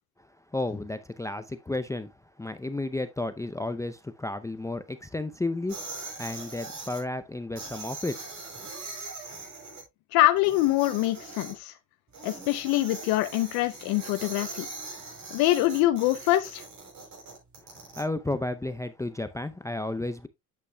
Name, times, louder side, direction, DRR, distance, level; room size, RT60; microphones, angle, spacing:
voice 1, 0.5-5.8 6.2-8.3 17.6-20.3, left 2 dB, 10° left, 0.5 m, -32 dB
sound 1, 5.7-7.0 7.5-9.8 10.4-11.5 12.1-18.0, right 3 dB, 55° right, 5.1 m, -41 dB
voice 2, 10.1-11.7 12.2-14.7 15.3-16.6, left 16 dB, 90° left, 0.6 m, -24 dB
8.4 x 8.3 x 2.2 m
cardioid pair, 95°, 35 cm